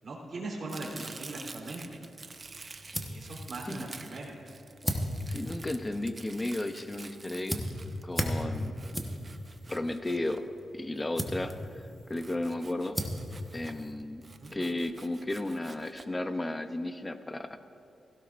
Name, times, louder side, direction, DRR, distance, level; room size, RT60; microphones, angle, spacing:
voice 1, 0.0-1.8 3.1-4.3 8.3-8.5 14.4-14.5, right 2 dB, 50° right, -3 dB, 3.3 m, -40 dB
Domestic sounds home sounds, 0.7-11.0 12.1-13.9 14.2-16.1, right 3 dB, 35° right, 0.6 m, -49 dB
sound 1, 2.3-14.5, equal, 5° right, 1.1 m, -38 dB
voice 2, 5.3-7.6 8.0-8.7 9.7-10.4 10.7-11.6 12.1-13.0 13.5-14.2 14.5-17.6, left 1 dB, 20° left, 9 dB, 0.6 m, -34 dB
16.5 x 16.0 x 2.5 m, 2.7 s
wide cardioid pair, 115°, 0 cm